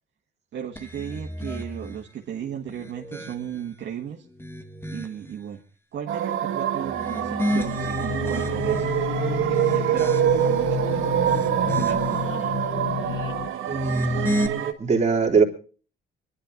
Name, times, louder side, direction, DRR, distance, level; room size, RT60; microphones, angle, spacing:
voice 1, 0.5-4.3 4.9-5.6 5.9-8.9 9.5-11.2 11.6-12.7, right 9 dB, 65° right, 0 dB, 1.9 m, -35 dB
sound 1, 0.8-2.1 2.6-3.7 4.2-5.3 6.8-9.0 9.5-10.6 11.1-12.2 13.7-14.5, left 1 dB, 10° left, 1.7 m, -33 dB
sound 2, 6.1-14.7, right 11 dB, 85° right, 1.7 m, -25 dB
sound 3, 7.5-13.5, left 10 dB, 75° left, 1.0 m, -31 dB
voice 2, 13.7-15.4, right 4 dB, 35° right, 1 dB, 3.2 m, -22 dB
24.0 x 11.5 x 3.9 m, 0.39 s
cardioid pair, 90°, 20 cm